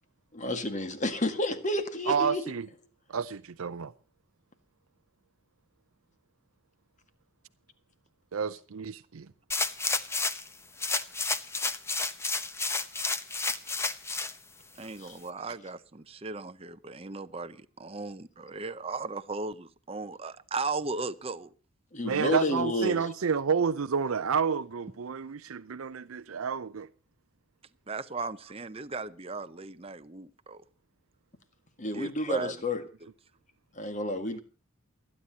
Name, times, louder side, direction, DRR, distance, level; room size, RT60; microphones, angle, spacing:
voice 1, 0.3-2.4 15.0-15.2 21.9-23.0 31.8-32.8 33.8-34.4, left 1 dB, 35° left, 1.8 m, -30 dB
voice 2, 2.1-2.7 3.1-3.9 8.3-9.3 22.0-26.9, right 6 dB, 80° right, 0.6 m, -30 dB
sound 1, 9.5-10.5 10.8-14.3 14.8-14.9, left 3 dB, 10° left, 0.8 m, -30 dB
voice 3, 14.8-21.5 27.9-30.6 31.9-32.6, right 3 dB, 25° right, 0.7 m, -37 dB
29.0 x 9.9 x 2.9 m
head